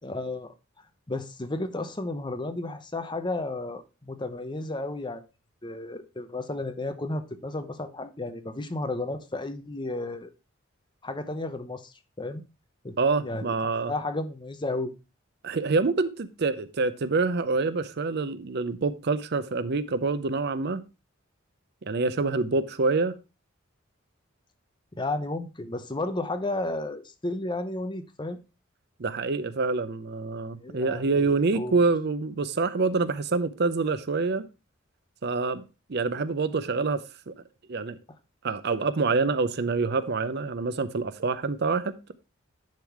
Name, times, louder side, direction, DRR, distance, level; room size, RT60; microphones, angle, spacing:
voice 1, 0.0-0.5 1.1-5.2 5.6-10.3 11.0-12.4 12.8-13.5 13.8-14.9 24.9-28.4 30.6-31.8, left 2 dB, 25° left, 0.8 m, -33 dB
voice 2, 13.0-13.9 15.4-20.8 21.8-23.2 29.0-34.5 35.2-35.6 35.9-37.4 37.7-38.0 38.4-42.1, right 3 dB, 55° right, 0.6 m, -26 dB
10.5 x 3.8 x 4.6 m
head